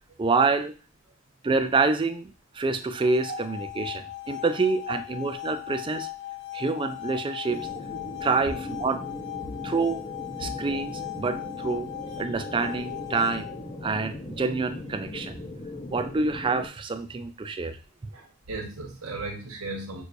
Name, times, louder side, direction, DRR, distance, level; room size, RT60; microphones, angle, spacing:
voice 1, 0.2-0.7 1.4-6.1 6.5-7.7 8.2-9.0 9.6-10.0 10.4-11.9 12.2-13.5 13.8-15.4 15.9-17.8, right 4 dB, 25° right, 8 dB, 0.3 m, -27 dB
sound 1, 2.9-13.9, left 17 dB, 55° left, 0.4 m, -38 dB
sound 2, 7.5-16.7, left 1 dB, 25° left, 0.7 m, -39 dB
voice 2, 18.1-20.0, right 3 dB, 85° right, 0 dB, 1.3 m, -36 dB
6.2 x 2.6 x 2.6 m, 0.34 s
head